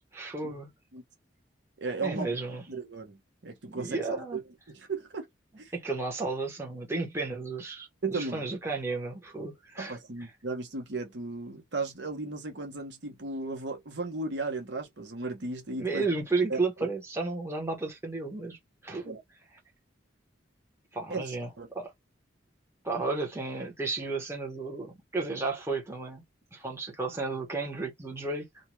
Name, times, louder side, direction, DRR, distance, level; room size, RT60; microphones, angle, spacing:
voice 1, 0.1-0.7 2.0-2.6 3.7-4.4 5.7-10.0 15.8-18.6 18.8-19.2 20.9-21.5 21.7-21.9 22.8-26.2 26.5-28.5, right 3 dB, 15° right, 1.0 m, -33 dB
voice 2, 1.8-2.3 2.7-3.2 3.4-4.0 4.3-4.4 4.7-5.3 5.6-5.7 8.0-8.4 9.8-16.0 16.5-16.6 19.0-19.2 21.1-21.7, right 3 dB, 65° right, 0.9 m, -35 dB
2.6 x 2.3 x 3.0 m
head